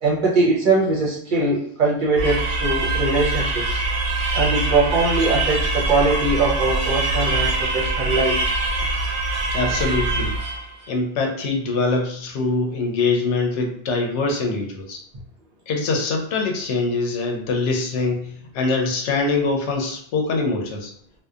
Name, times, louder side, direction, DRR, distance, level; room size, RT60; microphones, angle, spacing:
voice 1, 0.0-3.8 4.3-8.4, right 3 dB, 50° right, -3 dB, 0.7 m, -21 dB
sound 1, 2.2-10.7, right 2 dB, 80° right, 0.9 m, -23 dB
voice 2, 9.5-10.3 10.9-15.0 15.7-20.9, left 3 dB, 85° left, 2 dB, 0.9 m, -23 dB
2.7 x 2.2 x 2.3 m, 0.62 s
omnidirectional pair, 1.2 m